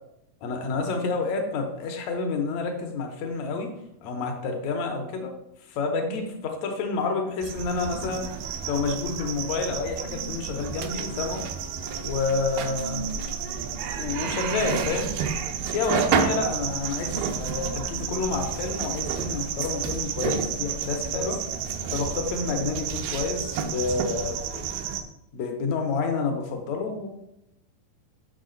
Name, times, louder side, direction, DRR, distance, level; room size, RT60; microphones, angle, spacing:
voice 1, 0.4-3.7 4.0-5.3 5.6-8.3 8.7-11.5 12.0-13.2 14.0-15.1 15.7-21.4 21.9-24.7 25.3-27.3, left 4 dB, 85° left, 3 dB, 1.5 m, -29 dB
sound 1, 7.4-25.0, right 7 dB, 85° right, 2.3 m, -30 dB
7.4 x 6.3 x 3.8 m, 0.83 s
omnidirectional pair, 4.4 m